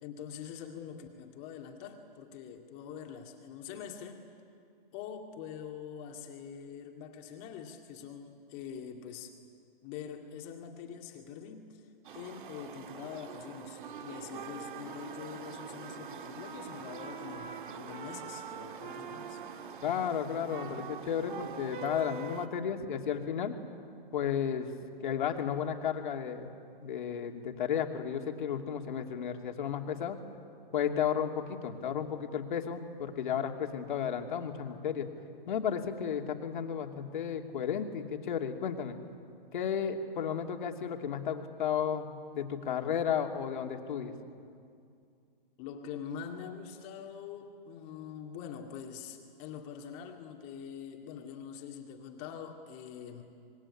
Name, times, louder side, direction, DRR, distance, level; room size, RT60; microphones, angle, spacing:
voice 1, 0.0-4.2 4.9-9.3 9.8-19.4 45.6-53.2, left 7 dB, 30° left, 3 dB, 2.3 m, -44 dB
sound 1, 12.0-22.5, right 6 dB, 60° right, 1.8 m, -43 dB
voice 2, 19.8-23.6 24.1-24.7 25.0-26.5 26.8-30.2 30.7-35.1 35.5-39.0 39.5-44.1, left 8 dB, 55° left, 4 dB, 2.7 m, -33 dB
26.0 x 21.0 x 9.9 m, 2.4 s
hypercardioid pair, 145°, 29 cm